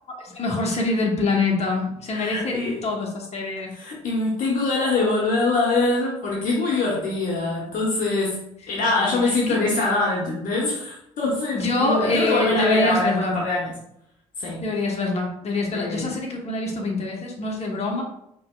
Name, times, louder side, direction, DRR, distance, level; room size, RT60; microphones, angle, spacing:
voice 1, 0.1-2.6 2.8-3.7 9.0-9.6 11.5-13.4 14.6-18.0, left 2 dB, 45° left, -1 dB, 1.3 m, -25 dB
voice 2, 2.1-2.8 3.7-8.4 8.7-13.7 14.4-14.6 15.7-16.1, left 2 dB, 65° left, -3 dB, 1.1 m, -24 dB
5.1 x 3.0 x 2.4 m, 0.76 s
hypercardioid pair, 55°, 15 cm